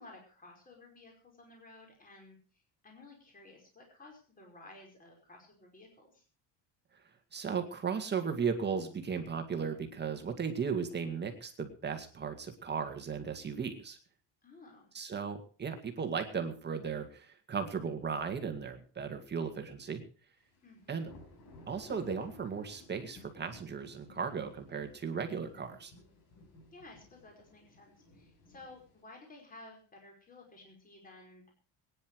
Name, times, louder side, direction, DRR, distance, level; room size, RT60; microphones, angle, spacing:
voice 1, 0.0-6.2 14.4-14.9 20.6-21.1 26.7-31.5, left 2 dB, 20° left, 1 dB, 5.2 m, -55 dB
voice 2, 7.3-14.0 14.9-20.0 20.9-21.1 21.7-25.9, right 6 dB, 25° right, 6 dB, 2.1 m, -36 dB
sound 1, 20.5-29.0, left 2 dB, 50° left, 6.1 m, -56 dB
21.5 x 10.0 x 4.7 m, 0.40 s
cardioid pair, 155°, 43 cm